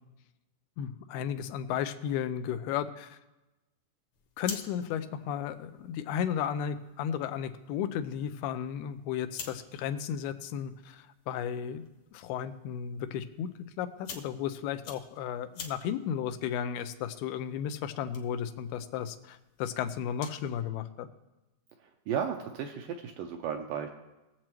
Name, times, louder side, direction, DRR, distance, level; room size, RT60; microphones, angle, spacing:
voice 1, 0.8-3.2 4.4-11.8 12.1-13.5 13.8-21.1, left 9 dB, 90° left, 10 dB, 2.6 m, -34 dB
sound 1, 4.1-20.5, left 6 dB, 65° left, 1.9 m, -50 dB
voice 2, 22.1-23.9, right 8 dB, 80° right, 4 dB, 2.0 m, -34 dB
21.5 x 7.5 x 3.0 m, 1.0 s
omnidirectional pair, 4.4 m